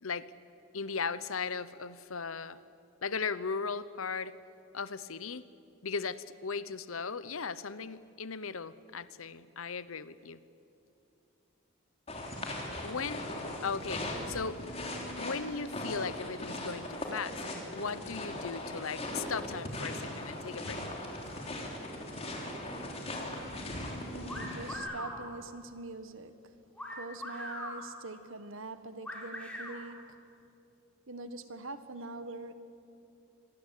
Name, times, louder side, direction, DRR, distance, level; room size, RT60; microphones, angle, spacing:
voice 1, 0.7-2.6 3.0-4.3 4.7-5.4 5.8-10.4 12.8-13.2 13.6-14.6 15.2-17.4 17.7-20.9, left 5 dB, 75° left, 16 dB, 0.9 m, -37 dB
sound 1, 12.1-24.7, left 1 dB, 30° left, 3.4 m, -39 dB
voice 2, 24.1-26.4 27.0-30.3 31.1-32.5, right 2 dB, 65° right, 11 dB, 1.5 m, -43 dB
sound 2, 24.3-25.2 26.8-27.8 29.0-29.8, left 1 dB, 5° left, 4.2 m, -40 dB
26.5 x 21.5 x 8.5 m, 2.7 s
head